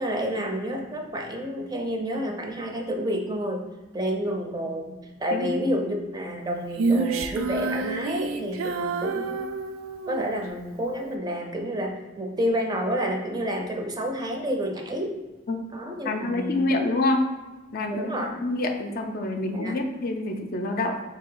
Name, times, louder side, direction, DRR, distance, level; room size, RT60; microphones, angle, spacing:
voice 1, 0.0-3.6 3.9-9.4 10.1-15.1 15.7-16.7 17.9-18.3 19.5-19.8, equal, 20° right, 2 dB, 0.4 m, -29 dB
Female singing, 6.7-10.3, right 4 dB, 90° right, 0.4 m, -28 dB
voice 2, 16.0-17.2 17.7-21.0, left 2 dB, 45° left, 4 dB, 0.4 m, -27 dB
4.2 x 2.7 x 3.8 m, 1.2 s
head